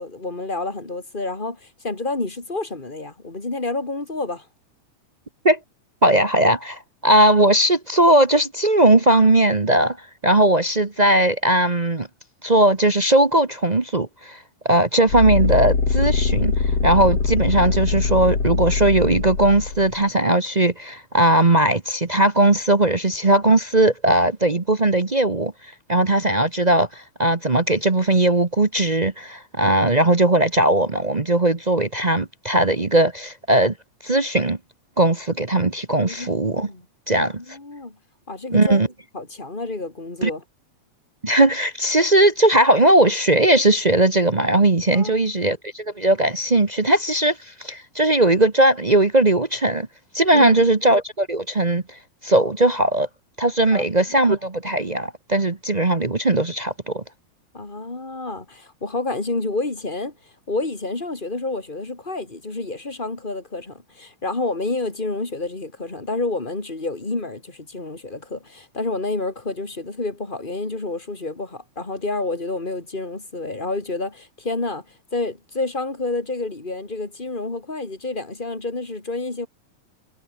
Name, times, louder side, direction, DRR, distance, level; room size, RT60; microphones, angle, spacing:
voice 1, 0.0-4.5 36.0-36.3 36.7-36.8 37.2-38.0 38.3-38.8 39.1-40.4 44.9-45.3 50.3-50.6 53.7-53.8 57.5-60.1 60.5-74.8 75.1-79.5, left 2 dB, 15° left, 2.8 m, -29 dB
voice 2, 6.0-10.0 10.2-12.1 12.4-14.4 14.6-25.5 25.9-33.7 34.0-34.6 35.0-36.7 37.1-37.4 38.5-38.9 40.2-40.3 41.2-49.9 50.1-53.1 53.4-57.0, right 1 dB, 70° right, 0.4 m, -18 dB
sound 1, 15.1-20.0, left 4 dB, 50° left, 5.3 m, -22 dB
omnidirectional pair, 3.4 m